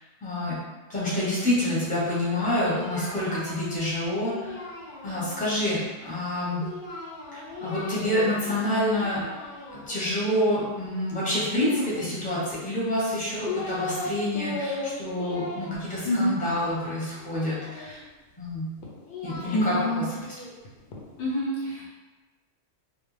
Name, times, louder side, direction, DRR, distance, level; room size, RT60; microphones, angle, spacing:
voice 1, 0.2-0.6 0.9-4.5 5.0-6.7 7.3-9.2 9.7-18.0 18.4-18.7 19.2-20.3, left 1 dB, 10° left, -8 dB, 0.7 m, -27 dB
Singing, 2.2-5.5 6.6-8.6 8.9-10.2 11.6-12.5 13.1-14.1 14.3-18.0 18.8-21.0, left 3 dB, 60° left, 0.7 m, -37 dB
voice 2, 16.0-16.4 19.5-20.0 21.2-21.9, equal, 85° left, -8 dB, 1.2 m, -26 dB
2.4 x 2.1 x 3.1 m, 1.2 s
omnidirectional pair, 1.2 m